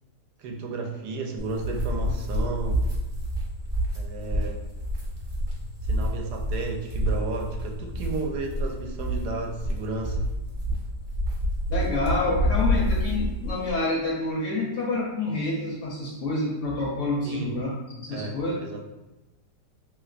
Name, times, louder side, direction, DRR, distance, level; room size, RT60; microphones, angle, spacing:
voice 1, 0.4-2.9 4.0-4.6 5.8-10.2 17.2-17.5 18.1-18.4 18.6-18.8, right 3 dB, 80° right, 2 dB, 1.1 m, -33 dB
sound 1, 1.4-13.7, equal, 40° right, 0.8 m, -28 dB
voice 2, 11.7-18.5, left 2 dB, 70° left, -3 dB, 0.7 m, -28 dB
3.2 x 3.0 x 2.4 m, 1.0 s
omnidirectional pair, 1.8 m